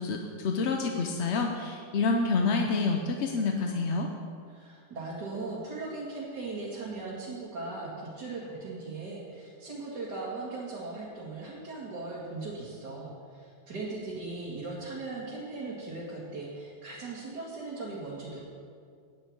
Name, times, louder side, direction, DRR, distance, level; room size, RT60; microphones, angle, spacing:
voice 1, 0.0-4.1, left 4 dB, 55° left, 3 dB, 0.8 m, -28 dB
voice 2, 4.5-18.4, right 3 dB, 75° right, -7 dB, 2.5 m, -38 dB
10.0 x 6.7 x 8.6 m, 2.3 s
omnidirectional pair, 1.8 m